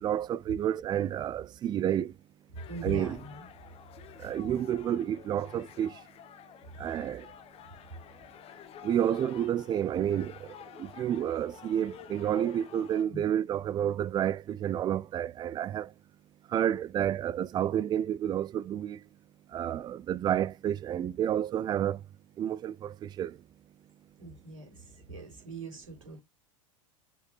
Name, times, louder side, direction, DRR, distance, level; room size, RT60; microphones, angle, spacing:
voice 1, 0.0-2.1 2.8-3.2 4.2-5.9 6.8-7.3 8.8-10.5 10.8-15.9 16.5-19.0 19.5-22.0 22.4-23.4, right 10 dB, 25° right, 0.4 m, -30 dB
sound 1, 2.6-13.0, left 10 dB, 35° left, 0.9 m, -51 dB
voice 2, 2.7-3.5 13.1-13.2 24.2-26.2, right 2 dB, 90° right, 3.8 m, -41 dB
6.7 x 4.9 x 3.1 m
figure-of-eight pair, 85°, 17 cm